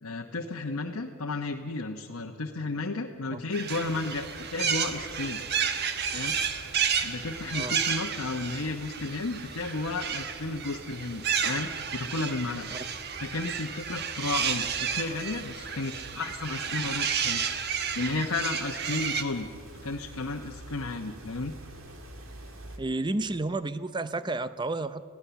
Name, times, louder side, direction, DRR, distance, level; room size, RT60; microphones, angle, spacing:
voice 1, 0.0-5.4 6.1-6.4 7.0-12.7 13.2-17.4 17.9-19.5 19.8-21.5, left 3 dB, 75° left, 1 dB, 1.0 m, -33 dB
sound 1, 3.5-19.2, right 7 dB, 45° right, 1.2 m, -32 dB
sound 2, 3.7-22.8, right 1 dB, 70° right, 2.5 m, -48 dB
voice 2, 22.8-25.0, right 2 dB, 20° right, 13 dB, 0.6 m, -31 dB
25.5 x 16.5 x 7.0 m, 2.4 s
head